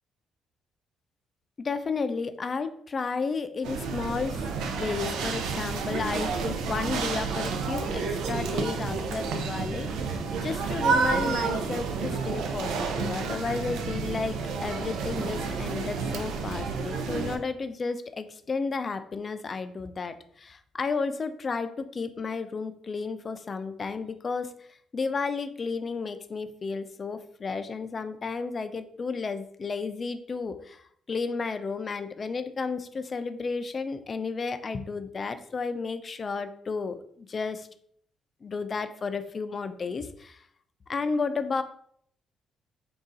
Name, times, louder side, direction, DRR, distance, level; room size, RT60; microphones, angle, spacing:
voice 1, 1.6-4.4 4.8-24.7 24.9-37.7 38.4-40.4 40.9-41.6, left 4 dB, 40° left, 10 dB, 0.4 m, -32 dB
sound 1, 3.6-17.4, right 4 dB, 85° right, 0.4 m, -30 dB
3.8 x 2.3 x 3.8 m, 0.63 s
cardioid pair, 90°, 0 cm